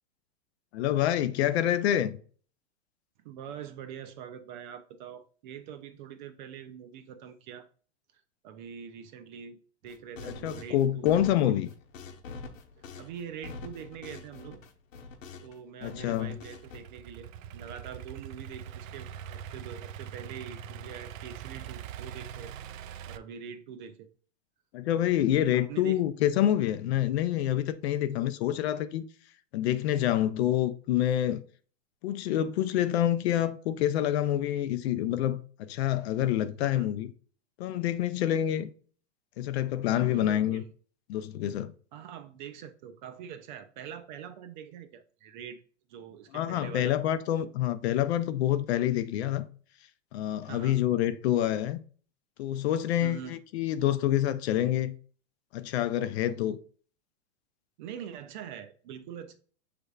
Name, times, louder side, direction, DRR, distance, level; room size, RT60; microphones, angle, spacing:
voice 1, 0.7-2.2 10.3-11.7 15.8-16.4 24.7-29.0 29.5-31.4 32.0-37.1 37.6-38.7 39.4-40.6 41.1-41.7 46.3-49.5 50.1-51.8 52.4-55.0 55.5-56.6, left 12 dB, 55° left, 0.5 m, -27 dB
voice 2, 3.2-7.7 8.1-9.6 9.8-11.1 12.8-14.6 15.4-22.5 23.1-24.1 25.5-26.0 36.6-36.9 39.9-40.7 41.9-45.6 45.9-47.0 50.4-50.8 53.0-53.4 57.8-59.4, right 8 dB, 40° right, 0.4 m, -44 dB
sound 1, 9.8-15.6 15.8-16.8, left 4 dB, 90° left, 1.0 m, -45 dB
Idling / Accelerating revving vroom, 16.1-23.2, right 9 dB, 90° right, 0.5 m, -43 dB
6.5 x 3.4 x 2.3 m
supercardioid pair, 155°, 38 cm